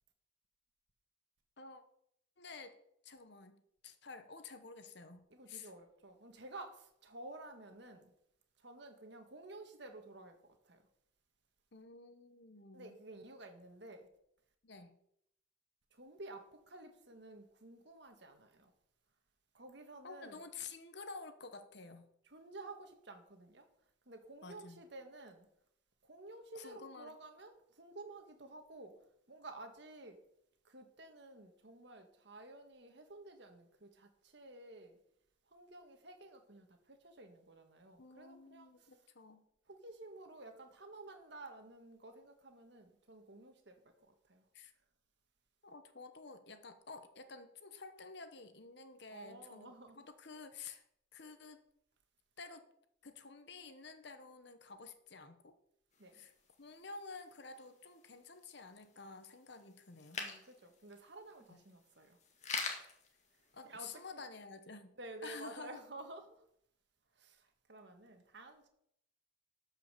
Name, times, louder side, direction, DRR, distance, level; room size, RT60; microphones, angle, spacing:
voice 1, 2.4-2.8 3.0-5.2 5.5-5.7 11.7-13.0 14.6-15.0 20.0-22.1 24.4-24.8 26.5-27.1 38.0-39.4 44.5-44.7 45.6-50.8 51.1-51.6 52.4-52.6 53.0-55.5 56.1-56.3 56.6-60.2 61.5-61.6 63.5-64.9 65.2-65.8, left 4 dB, 60° left, 1.1 m, -51 dB
voice 2, 5.3-8.1 8.6-10.8 12.7-14.1 15.9-18.7 19.5-20.4 22.2-23.7 24.0-25.5 26.0-28.9 29.3-30.2 30.6-35.0 35.5-38.9 39.7-43.8 44.2-44.4 49.1-50.0 56.0-56.2 60.1-62.2 62.5-62.8 63.6-64.2 65.0-66.4 67.1-68.7, right 2 dB, 60° right, 1.6 m, -52 dB
sound 1, 55.9-64.1, left 4 dB, 35° left, 1.8 m, -47 dB
13.0 x 5.6 x 6.7 m
head